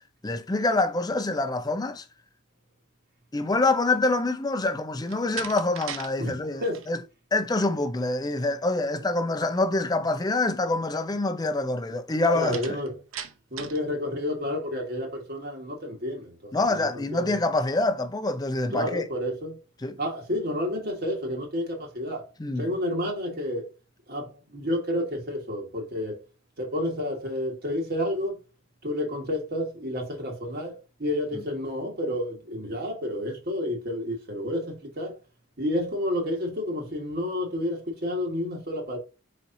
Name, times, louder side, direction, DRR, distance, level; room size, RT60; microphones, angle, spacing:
voice 1, 0.2-2.0 3.3-7.0 7.3-12.6 16.5-19.0 19.8-20.0 22.4-22.7, left 2 dB, 20° left, 0.5 m, -26 dB
Slam, 5.0-6.1 6.4-6.9 12.5-13.9, right 8 dB, 80° right, 0.7 m, -38 dB
voice 2, 6.2-6.8 12.3-13.0 13.5-17.4 18.7-19.6 20.0-22.3 22.6-23.7 24.1-26.2 26.6-28.3 28.8-35.2 35.6-39.0, left 1 dB, 50° right, 1.4 m, -30 dB
4.6 x 4.2 x 2.6 m
head